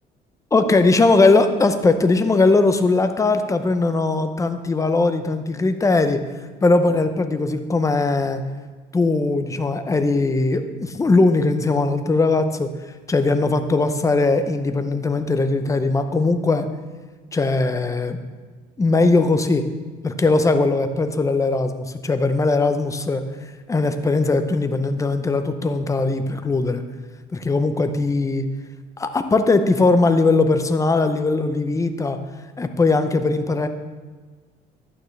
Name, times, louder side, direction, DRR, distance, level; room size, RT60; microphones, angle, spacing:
voice 1, 0.5-6.2 6.6-8.4 8.9-12.7 13.1-16.7 17.3-18.2 18.8-19.6 20.0-23.2 23.7-26.8 27.3-28.5 29.0-32.2 32.6-33.7, left 3 dB, 20° left, 9 dB, 0.7 m, -19 dB
11.0 x 9.2 x 3.3 m, 1.4 s
cardioid pair, 110°, 17 cm